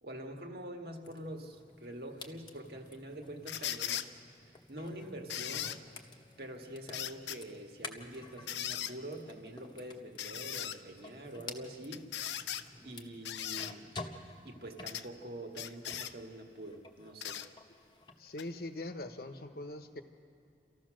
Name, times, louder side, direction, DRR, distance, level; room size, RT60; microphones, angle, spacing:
voice 1, 0.0-5.8 6.4-12.1 12.8-13.9 14.4-17.4, right 1 dB, 60° right, 3 dB, 1.8 m, -45 dB
sound 1, 1.0-16.2 16.5-18.2, left 3 dB, 25° left, 1.1 m, -51 dB
sound 2, 3.5-4.1 5.3-5.8 6.9-7.4 8.5-8.9 10.2-10.8 11.9-12.6 13.2-13.7 14.9-15.1 15.5-16.1 17.2-17.5 18.4-18.5, left 11 dB, 80° left, 0.7 m, -38 dB
voice 2, 18.2-20.0, left 2 dB, 55° left, 8 dB, 1.1 m, -42 dB
29.0 x 14.0 x 6.4 m, 2.6 s
head